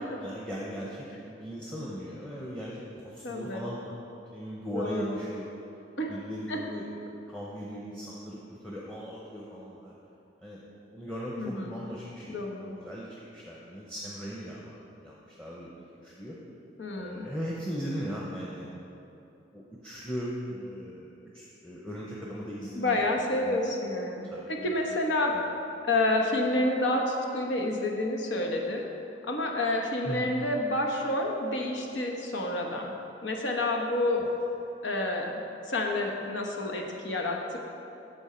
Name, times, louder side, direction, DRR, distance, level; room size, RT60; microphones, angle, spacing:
voice 1, 0.1-4.0 4.3-5.5 6.1-10.0 10.4-10.6 10.9-16.4 17.0-18.7 19.5-23.0 23.4-23.6 24.2-24.7 25.3-25.4 30.0-30.3 34.2-34.3, equal, 5° left, -5 dB, 0.8 m, -38 dB
voice 2, 3.2-3.7 4.7-5.2 6.0-6.1 6.5-6.6 11.4-11.8 12.3-12.8 16.8-17.3 22.7-25.4 25.9-28.9 29.3-32.9 33.2-34.3 34.8-35.4 35.7-37.6, left 1 dB, 90° left, 1 dB, 1.1 m, -29 dB
8.8 x 7.1 x 4.3 m, 3.0 s
head